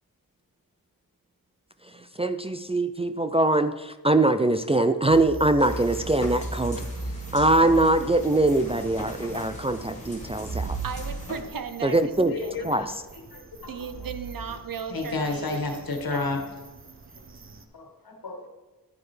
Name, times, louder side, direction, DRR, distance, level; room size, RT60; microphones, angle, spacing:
voice 1, 1.9-6.8 7.3-10.8 11.8-12.3 12.6-12.8, right 2 dB, 15° right, 9 dB, 0.3 m, -22 dB
sound 1, 5.1-17.6, right 3 dB, 35° right, 0.7 m, -39 dB
sound 2, 5.6-11.4, left 1 dB, 20° left, 2.4 m, -39 dB
voice 2, 10.8-12.9 13.7-15.8 16.1-16.5, right 6 dB, 70° right, 9 dB, 0.9 m, -37 dB
voice 3, 12.3-12.9 13.3-13.7 14.9-16.4 17.1-17.2 17.7-18.5, left 3 dB, 75° left, 2 dB, 1.8 m, -31 dB
11.0 x 8.9 x 3.3 m, 1.2 s
wide cardioid pair, 85°, 36 cm